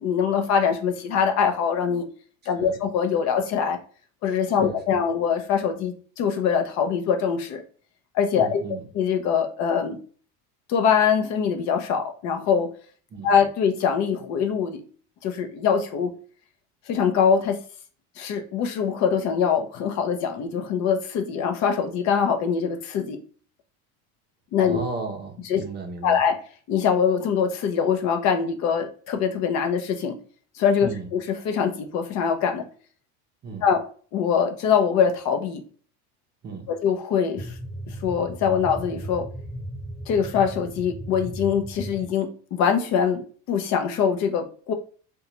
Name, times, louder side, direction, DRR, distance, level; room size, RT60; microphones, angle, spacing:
voice 1, 0.0-2.1 2.5-3.8 4.2-7.6 8.1-10.0 10.7-12.7 13.2-14.8 15.2-16.1 16.9-17.6 18.2-23.2 24.5-24.8 25.5-25.6 26.0-26.4 26.7-30.2 30.6-32.6 33.6-33.8 34.1-35.6 36.7-37.5 37.9-39.2 40.1-43.2 43.5-44.7, left 7 dB, 50° left, 6 dB, 0.6 m, -23 dB
voice 2, 4.6-5.0 8.4-8.8 13.1-13.3 24.6-26.2 30.8-31.1 33.4-33.7 36.4-36.7, right 4 dB, 30° right, 3 dB, 0.6 m, -35 dB
sound 1, 37.3-42.0, right 1 dB, 20° left, 1.1 m, -36 dB
3.8 x 2.3 x 2.9 m, 0.42 s
cardioid pair, 155°, 36 cm